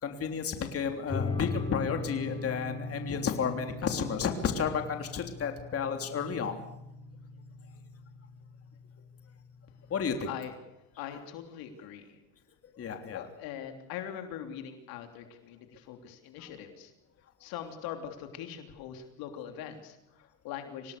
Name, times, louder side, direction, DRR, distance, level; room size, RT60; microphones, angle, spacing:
voice 1, 0.0-6.6 9.9-10.3 12.8-13.2, left 6 dB, 35° left, 5 dB, 3.3 m, -32 dB
sound 1, 1.1-10.1, left 3 dB, 15° left, 3.9 m, -40 dB
voice 2, 10.2-10.6 11.0-12.2 12.7-12.8 13.1-16.9 17.4-21.0, left 9 dB, 65° left, 6 dB, 3.3 m, -42 dB
26.0 x 18.0 x 6.8 m, 0.90 s
supercardioid pair, 110°, 38 cm